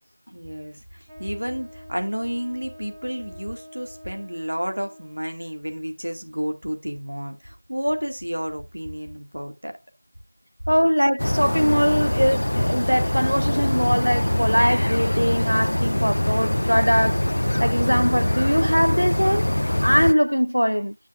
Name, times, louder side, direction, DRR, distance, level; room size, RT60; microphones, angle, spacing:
voice 1, 0.3-9.7, equal, 60° right, 2.0 m, -31 dB
Wind instrument woodwind instrument, 1.1-5.5, left 1 dB, 10° right, 1.0 m, -46 dB
voice 2, 10.7-17.3 17.6-19.5 19.8-21.0, equal, 90° right, 0.4 m, -21 dB
sound 1, 11.2-20.1, left 1 dB, 40° left, 0.4 m, -23 dB
12.0 x 7.2 x 2.5 m
figure-of-eight pair, 175°, 0 cm